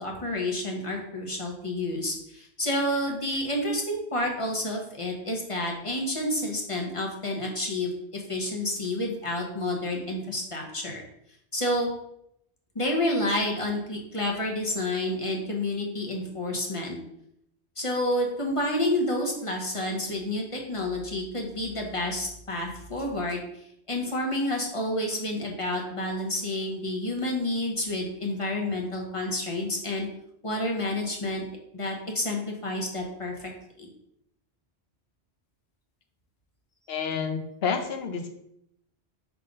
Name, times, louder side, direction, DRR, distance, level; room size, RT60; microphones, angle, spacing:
voice 1, 0.0-11.0 11.5-11.9 12.7-17.0 17.8-23.4 23.9-30.1 30.4-31.4 31.7-33.5 33.8-33.9, left 1 dB, 30° left, 0 dB, 1.2 m, -29 dB
voice 2, 36.9-38.3, left 6 dB, 65° left, 6 dB, 1.0 m, -29 dB
5.5 x 3.6 x 5.2 m, 0.77 s
omnidirectional pair, 1.1 m